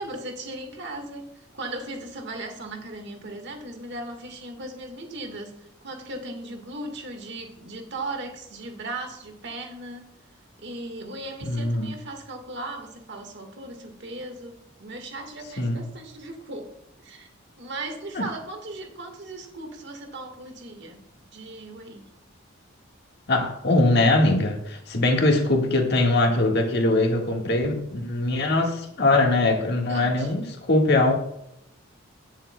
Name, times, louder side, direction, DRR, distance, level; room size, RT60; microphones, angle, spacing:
voice 1, 0.0-10.2 10.6-16.7 17.0-17.3 17.6-22.1 29.6-30.3, right 2 dB, 55° right, 1.5 m, -37 dB
voice 2, 11.5-11.9 15.6-15.8 18.1-18.2 23.3-31.1, left 2 dB, 50° left, 1.6 m, -22 dB
18.5 x 7.3 x 2.2 m
head